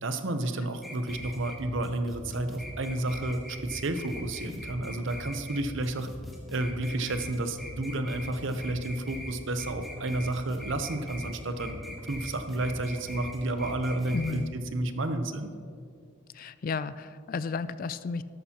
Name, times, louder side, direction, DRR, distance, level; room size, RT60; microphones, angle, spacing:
voice 1, 0.0-6.1 6.5-15.5, right 2 dB, 60° right, 8 dB, 0.8 m, -31 dB
sound 1, 0.8-14.4, equal, ahead, 1.4 m, -41 dB
voice 2, 14.1-14.5 16.3-18.2, left 4 dB, 45° left, 15 dB, 0.3 m, -33 dB
13.0 x 12.5 x 2.9 m, 2.3 s
head